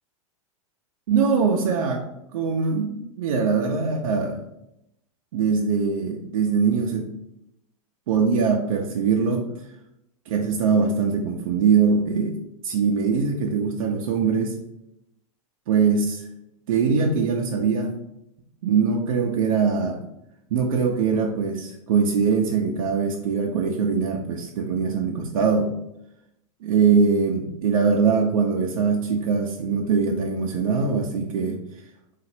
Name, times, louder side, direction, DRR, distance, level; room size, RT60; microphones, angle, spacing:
voice 1, 1.1-2.0 2.3-4.4 5.3-7.1 8.1-9.5 10.3-12.4 12.6-14.5 15.7-16.2 16.7-17.9 18.6-20.0 20.5-25.7 26.6-31.6, right 5 dB, 75° right, 0 dB, 0.6 m, -22 dB
3.9 x 2.5 x 4.3 m, 0.82 s
hypercardioid pair, 120°, 18 cm